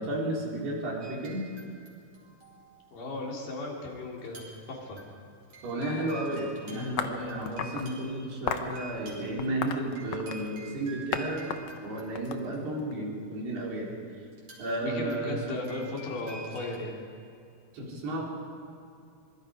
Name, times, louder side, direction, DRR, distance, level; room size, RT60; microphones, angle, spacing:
voice 1, 0.0-1.4 5.6-11.5 11.8-13.9 14.6-15.4 17.7-18.2, right 1 dB, 70° right, -3 dB, 5.8 m, -33 dB
sound 1, 1.0-2.9 4.1-4.7 5.0-12.9 14.3-16.8, right 1 dB, 30° right, 5.2 m, -49 dB
voice 2, 2.9-5.0 14.8-17.0, left 2 dB, 55° left, -1 dB, 4.7 m, -36 dB
sound 2, 7.0-7.9 8.5-8.7 9.4-10.5 11.1-11.2 11.5-12.9, left 9 dB, 85° left, 1.6 m, -34 dB
26.0 x 22.0 x 5.0 m, 2.5 s
omnidirectional pair, 4.7 m